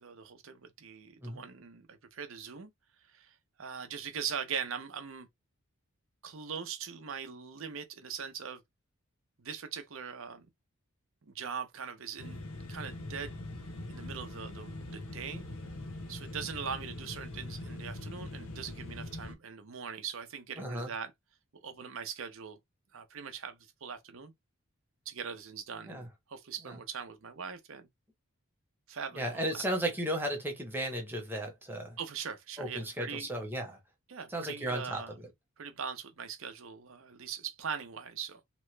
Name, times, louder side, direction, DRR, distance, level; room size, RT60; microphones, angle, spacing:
voice 1, 0.0-2.7 3.1-5.3 6.2-8.6 9.4-10.5 11.2-12.4 12.7-13.3 13.9-15.4 16.1-21.1 21.5-22.6 22.9-24.3 25.1-27.9 28.9-29.6 32.0-33.3 34.1-35.1 35.6-38.4, right 6 dB, 60° right, 0.7 m, -41 dB
sound 1, 12.2-19.3, left 1 dB, 70° left, 0.8 m, -42 dB
voice 2, 20.6-20.9 25.9-26.1 26.7-26.8 29.2-32.0 32.6-33.8 34.3-35.3, right 1 dB, 10° right, 0.8 m, -35 dB
3.0 x 2.1 x 3.1 m
head